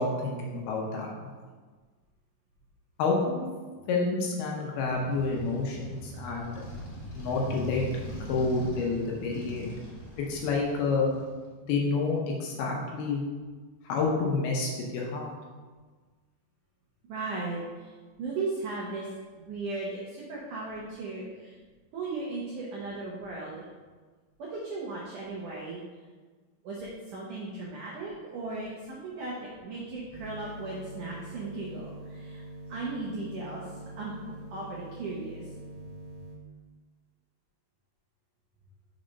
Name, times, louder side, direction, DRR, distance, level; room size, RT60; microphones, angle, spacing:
voice 1, 0.0-1.3 3.0-3.5 3.9-6.5 7.1-7.8 8.3-9.7 10.3-11.1 11.6-13.2 13.8-15.3, left 3 dB, 75° left, -1 dB, 2.5 m, -29 dB
Motorcycle, 4.8-11.5, left 1 dB, 55° left, 1.8 m, -42 dB
voice 2, 17.1-17.9 18.2-19.1 19.5-21.5 21.9-23.5 24.5-25.8 26.6-29.3 29.6-32.4 32.7-33.6 34.0-34.1 34.5-35.4, right 3 dB, 80° right, -4 dB, 1.8 m, -36 dB
sound 1, 30.1-36.3, right 1 dB, 50° right, 1.5 m, -44 dB
6.6 x 4.2 x 5.2 m, 1.4 s
omnidirectional pair, 5.0 m